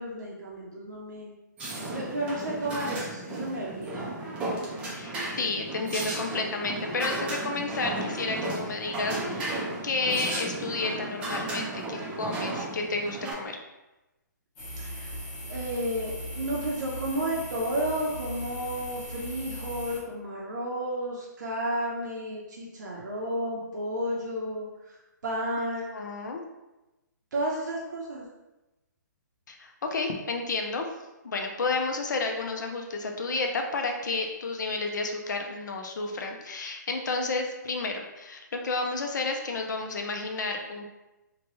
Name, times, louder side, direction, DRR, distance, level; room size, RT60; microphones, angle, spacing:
voice 1, 0.0-1.4 1.7-4.0 14.8-15.2 15.5-25.0 25.2-25.8 27.3-28.2, right 1 dB, 70° right, -4 dB, 0.6 m, -32 dB
sound 1, 1.6-13.3, right 2 dB, 10° right, 0.4 m, -34 dB
voice 2, 5.0-9.6 9.8-13.6 25.6-25.7 25.9-26.4 29.5-30.9 31.2-40.8, left 3 dB, 70° left, 3 dB, 0.5 m, -31 dB
sound 2, 14.6-20.0, equal, 25° left, 1.0 m, -39 dB
2.9 x 2.2 x 3.0 m, 1.0 s
hypercardioid pair, 160°, 10 cm